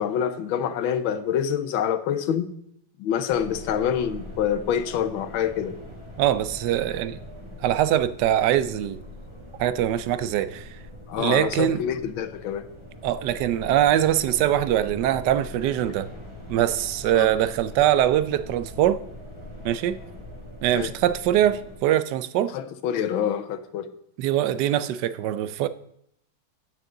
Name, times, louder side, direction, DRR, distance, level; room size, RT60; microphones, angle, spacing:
voice 1, 0.0-2.5 3.0-5.7 11.1-12.7 17.1-17.3 20.7-20.9 22.5-23.9, left 8 dB, 85° left, 1.6 m, -26 dB
sound 1, 3.3-21.8, left 1 dB, 15° right, 1.5 m, -42 dB
voice 2, 6.2-7.2 7.6-9.0 9.6-10.6 11.2-11.8 13.0-16.1 16.5-19.0 19.6-20.0 20.6-22.5 24.2-25.7, right 11 dB, 70° right, 1.1 m, -23 dB
9.3 x 9.1 x 3.8 m
omnidirectional pair, 2.1 m